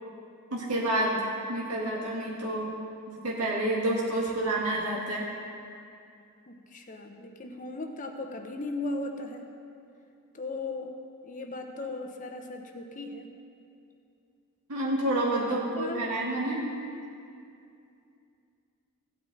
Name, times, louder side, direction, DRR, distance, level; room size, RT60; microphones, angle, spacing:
voice 1, 0.5-2.7 3.1-5.3 14.7-16.7, right 1 dB, 85° right, -4 dB, 1.7 m, -29 dB
voice 2, 6.5-9.5 10.3-10.9 11.2-13.3 15.4-16.1, left 2 dB, 35° left, 4 dB, 0.8 m, -37 dB
16.0 x 9.0 x 4.0 m, 2.5 s
head